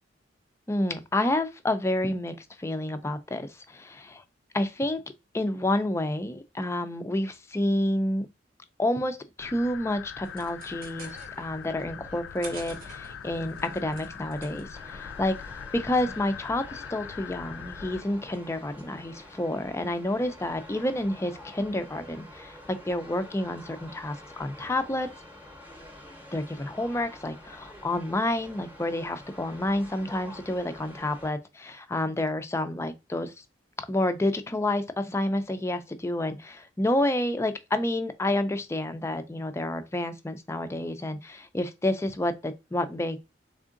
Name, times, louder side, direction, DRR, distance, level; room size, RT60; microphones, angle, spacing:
voice 1, 0.7-4.2 4.5-5.0 5.3-8.3 8.8-25.1 26.3-33.3 33.9-43.2, left 1 dB, 15° left, 0.4 m, -29 dB
sound 1, 9.4-18.0, left 8 dB, 90° left, 0.3 m, -42 dB
sound 2, 10.2-15.2, right 3 dB, 50° right, 0.8 m, -48 dB
sound 3, 14.7-31.3, left 1 dB, 10° right, 0.8 m, -48 dB
3.6 x 3.6 x 2.4 m
head